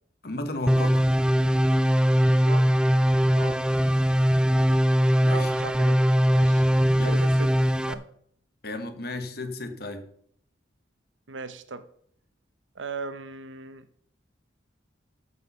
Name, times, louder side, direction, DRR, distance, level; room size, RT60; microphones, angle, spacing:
voice 1, 0.2-1.0 5.2-5.5 6.9-7.2 8.6-10.1, left 2 dB, 55° left, 1.3 m, -33 dB
sound 1, 0.7-7.9, equal, 5° right, 0.3 m, -21 dB
voice 2, 2.4-2.8 3.3-3.6 5.3-6.0 6.3-6.7 7.0-7.5 7.9-8.1 11.3-11.8 12.7-13.9, right 4 dB, 85° right, 0.9 m, -37 dB
14.0 x 5.5 x 5.5 m
head